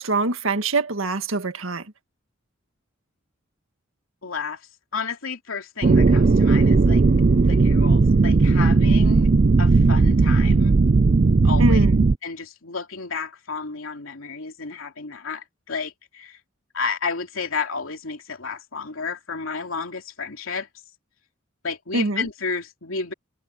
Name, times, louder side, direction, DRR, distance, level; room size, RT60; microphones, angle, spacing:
voice 1, 0.0-1.8 11.6-12.0 21.9-22.3, right 2 dB, 80° right, 1.8 m, -23 dB
voice 2, 4.2-4.6 4.9-7.0 7.5-9.3 9.6-10.8 11.4-11.9 12.2-16.4 16.7-20.7 21.6-23.1, left 5 dB, 80° left, 2.9 m, -32 dB
sound 1, 5.8-12.1, right 3 dB, 40° right, 0.4 m, -16 dB
head